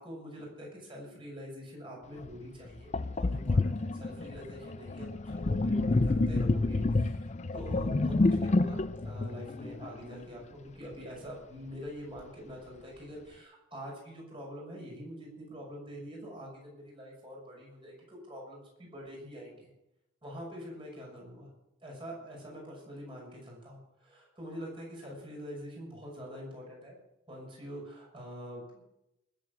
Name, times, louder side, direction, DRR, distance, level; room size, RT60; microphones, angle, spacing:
voice 1, 0.0-19.7 20.2-21.5 21.8-27.0 27.3-28.9, equal, 25° right, -1 dB, 6.1 m, -45 dB
Sink (filling or washing), 2.2-2.3 2.9-10.2, left 2 dB, 35° left, 0.4 m, -29 dB
20.0 x 8.0 x 6.2 m, 0.88 s
head